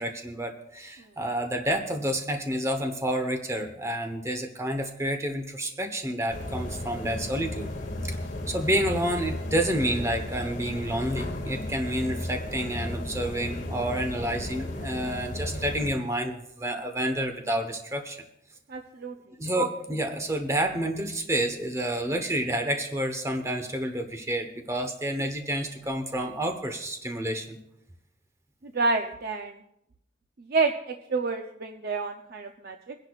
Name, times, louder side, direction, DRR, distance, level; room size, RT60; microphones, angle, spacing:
voice 1, 0.0-7.7 8.0-8.2 8.5-18.2 19.4-27.6, right 1 dB, 15° right, 5 dB, 1.1 m, -29 dB
sound 1, 6.3-15.9, left 1 dB, 50° left, 2.2 m, -34 dB
voice 2, 18.7-19.1 28.6-29.5 30.5-33.0, right 3 dB, 60° right, 5 dB, 0.6 m, -29 dB
23.0 x 10.5 x 2.4 m, 0.81 s
head